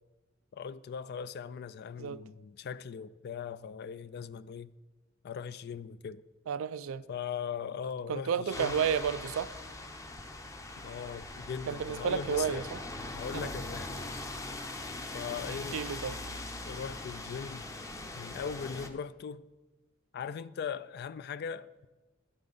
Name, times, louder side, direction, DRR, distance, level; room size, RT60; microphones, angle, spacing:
voice 1, 0.5-4.7 5.2-6.2 7.1-8.9 10.8-12.6 13.0-14.3 15.1-15.8 16.3-16.4 16.7-17.7 18.1-19.4 20.1-21.9, left 7 dB, 55° left, 0.3 m, -40 dB
voice 2, 6.5-7.0 8.1-9.5 11.7-12.8 13.3-13.5 15.5-16.2, right 7 dB, 85° right, 0.4 m, -32 dB
sound 1, 8.5-18.9, left 2 dB, 15° left, 0.7 m, -41 dB
12.0 x 8.8 x 3.9 m
head